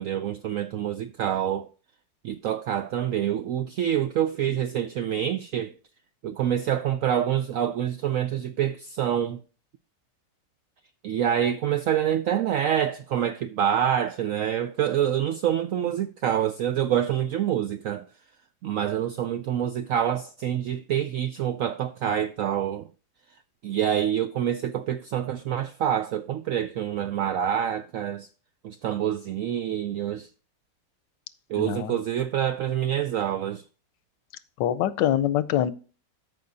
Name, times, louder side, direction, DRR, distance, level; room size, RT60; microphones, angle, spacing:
voice 1, 0.0-1.7 2.2-5.7 6.2-9.4 11.0-18.1 18.6-22.9 23.6-28.3 28.6-30.3 31.5-33.6, right 10 dB, 80° right, 0.7 m, -26 dB
voice 2, 31.6-32.0 34.6-35.7, left 11 dB, 85° left, 1.3 m, -24 dB
14.0 x 5.3 x 2.6 m
omnidirectional pair, 1.9 m